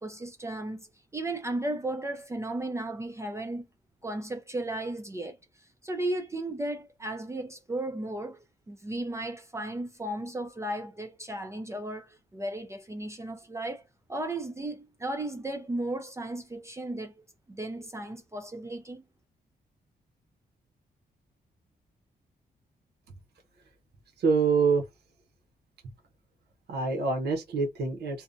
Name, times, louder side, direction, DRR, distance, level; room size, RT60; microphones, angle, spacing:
voice 1, 0.0-3.7 4.0-19.0, right 1 dB, 15° right, 0.4 m, -35 dB
voice 2, 24.2-24.8 26.7-28.2, right 5 dB, 80° right, 0.7 m, -25 dB
2.6 x 2.1 x 2.5 m
cardioid pair, 115°, 17 cm